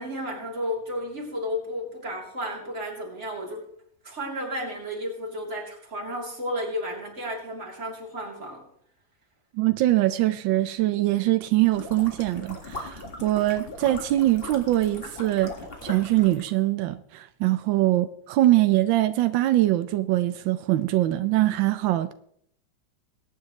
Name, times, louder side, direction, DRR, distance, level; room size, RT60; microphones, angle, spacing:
voice 1, 0.0-3.7 4.0-8.6, equal, 40° right, 3.5 m, -33 dB
voice 2, 9.5-15.5 15.8-22.1, right 15 dB, 90° right, 1.4 m, -23 dB
sound 1, 11.7-16.5, left 2 dB, 30° left, 2.1 m, -40 dB
22.0 x 9.6 x 3.2 m
omnidirectional pair, 2.0 m